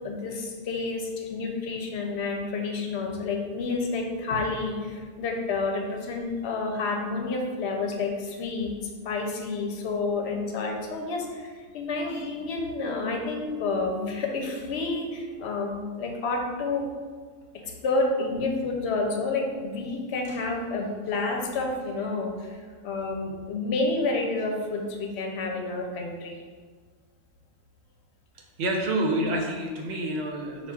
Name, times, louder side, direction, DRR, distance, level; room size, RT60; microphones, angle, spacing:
voice 1, 0.0-16.9 17.6-22.6 22.8-26.3, left 3 dB, 75° left, 1 dB, 0.9 m, -29 dB
voice 2, 28.6-30.7, right 1 dB, 75° right, 1 dB, 0.9 m, -28 dB
5.7 x 2.4 x 2.3 m, 1.5 s
omnidirectional pair, 1.1 m